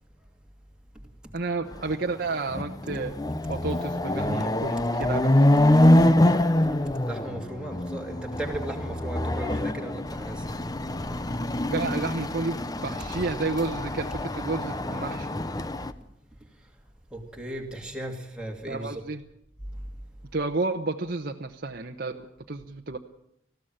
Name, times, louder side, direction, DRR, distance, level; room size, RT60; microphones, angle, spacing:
voice 1, 1.3-3.1 3.5-5.3 11.7-15.3 18.7-19.2 20.3-23.0, right 3 dB, 50° right, 2 dB, 1.0 m, -31 dB
Chatter / Car passing by / Motorcycle, 1.9-2.0 2.4-15.9, left 1 dB, 20° left, 0.7 m, -25 dB
voice 2, 6.6-10.6 11.0-11.1 16.3-16.7 17.1-19.0 19.7-20.0, right 1 dB, 5° right, 0 dB, 2.6 m, -37 dB
19.5 x 15.5 x 8.9 m, 0.76 s
head